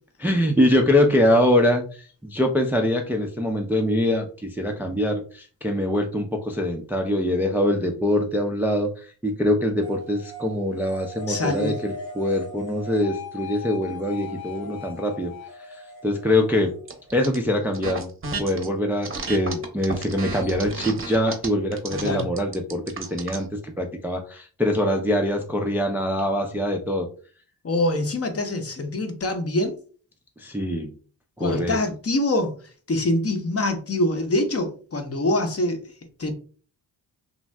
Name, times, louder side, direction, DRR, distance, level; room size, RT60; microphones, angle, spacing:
voice 1, 0.2-15.3 16.0-16.7 17.1-18.1 18.4-27.1 30.4-30.9 31.4-31.8, left 1 dB, 5° right, 0.4 m, -23 dB
sound 1, 9.8-17.3, left 3 dB, 85° left, 0.9 m, -39 dB
voice 2, 11.3-11.8 22.0-22.3 27.6-29.8 31.4-32.6 32.9-35.8 36.2-36.3, left 1 dB, 35° left, 0.7 m, -24 dB
sound 2, 16.9-17.4 17.7-18.7 19.0-23.4, right 3 dB, 30° right, 0.8 m, -33 dB
2.6 x 2.1 x 3.2 m
cardioid pair, 60°, 44 cm